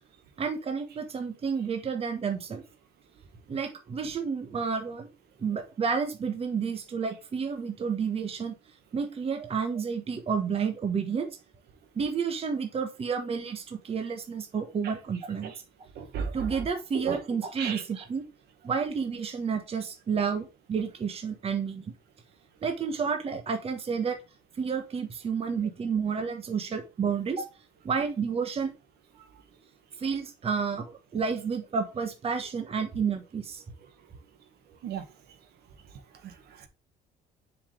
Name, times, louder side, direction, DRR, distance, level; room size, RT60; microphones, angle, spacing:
voice 1, 0.4-2.6 3.5-5.1 5.4-8.5 8.9-11.3 11.9-15.5 16.3-18.2 18.6-21.9 22.6-24.2 24.6-27.4 27.8-28.7 30.0-33.6, right 6 dB, 35° right, 6 dB, 1.4 m, -30 dB
voice 2, 16.0-16.5 17.0-17.2 17.6-17.8 34.8-35.0 36.2-36.7, right 6 dB, 70° right, 6 dB, 1.8 m, -35 dB
6.9 x 5.2 x 3.4 m, 0.28 s
cardioid pair, 110°, 17 cm